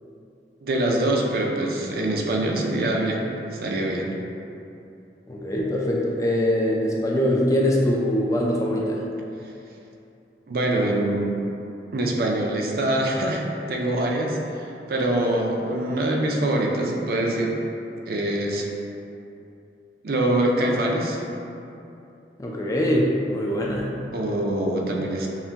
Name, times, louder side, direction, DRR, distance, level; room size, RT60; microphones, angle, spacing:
voice 1, 0.6-4.1 10.5-11.4 11.9-17.6 18.1-18.7 20.0-21.2 24.1-25.3, right 1 dB, 55° right, 0 dB, 0.4 m, -24 dB
voice 2, 5.3-9.0 22.4-23.9, equal, 20° left, -2 dB, 0.3 m, -23 dB
5.6 x 2.1 x 2.8 m, 2.7 s
head